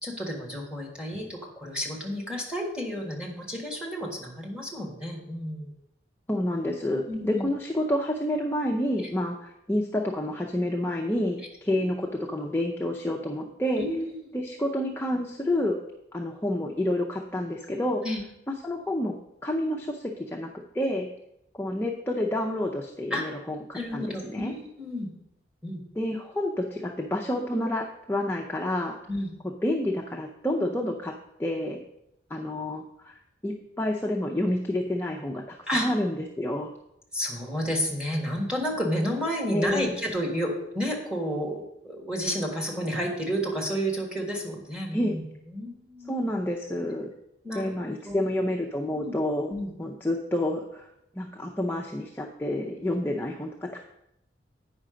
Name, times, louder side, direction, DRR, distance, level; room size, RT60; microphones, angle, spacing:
voice 1, 0.0-5.7 7.1-7.5 13.8-14.2 18.0-18.2 23.1-23.2 23.7-25.1 25.6-25.8 29.1-29.3 35.7-35.9 37.1-45.2 45.5-46.1 47.4-47.8 48.0-48.2 48.9-49.1 49.5-49.7 52.8-52.9, equal, 5° right, -1 dB, 1.6 m, -31 dB
voice 2, 6.3-13.8 14.3-15.8 16.1-18.0 18.6-19.1 19.4-20.5 20.7-21.1 21.5-24.5 26.0-29.0 29.4-31.8 32.3-33.2 33.4-36.8 39.5-39.9 44.9-45.2 46.1-47.1 47.5-49.5 49.8-50.9 51.1-53.8, left 1 dB, 10° left, 0 dB, 0.5 m, -29 dB
8.6 x 5.7 x 5.0 m, 0.83 s
head